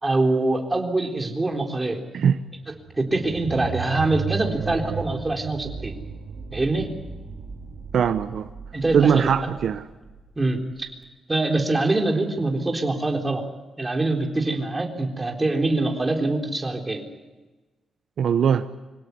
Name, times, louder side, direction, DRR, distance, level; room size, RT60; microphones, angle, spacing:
voice 1, 0.0-2.0 3.0-5.9 6.5-6.9 8.7-9.5 10.4-10.9 11.3-13.4 13.8-17.1, right 2 dB, 15° right, 2 dB, 3.9 m, -24 dB
sound 1, 2.5-10.9, right 6 dB, 85° right, 3.6 m, -35 dB
voice 2, 7.9-8.5 8.9-9.8 18.2-18.7, right 7 dB, 65° right, 8 dB, 0.9 m, -20 dB
26.0 x 17.0 x 9.6 m, 1.2 s
cardioid pair, 125°, 0 cm